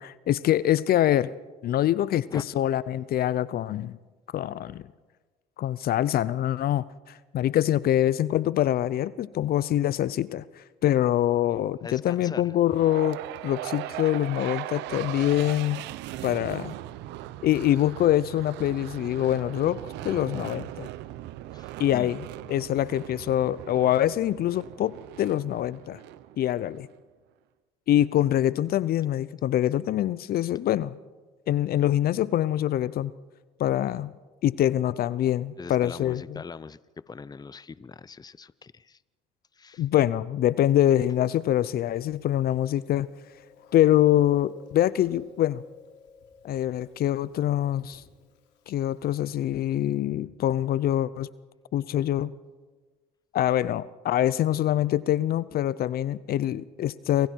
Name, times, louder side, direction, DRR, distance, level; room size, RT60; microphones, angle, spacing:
voice 1, 0.0-1.3 1.6-4.0 4.3-4.8 5.6-15.8 16.2-16.7 17.4-20.9 21.8-26.0 26.4-26.9 27.9-31.0 31.5-33.1 33.6-34.1 34.4-36.4 39.8-43.1 43.7-45.6 46.4-48.0 48.7-51.3 51.7-52.3 53.3-57.3, left 12 dB, 55° left, 19 dB, 0.7 m, -25 dB
voice 2, 11.8-12.5 21.5-22.2 35.6-36.8 37.1-39.0 39.6-39.8, left 5 dB, 20° left, 18 dB, 0.7 m, -41 dB
sound 1, 12.7-26.9, right 15 dB, 75° right, 1.0 m, -39 dB
Chewing mastication, 40.6-49.6, left 5 dB, 70° left, 3.7 m, -55 dB
28.0 x 26.0 x 4.6 m, 1.3 s
supercardioid pair, 75°, 18 cm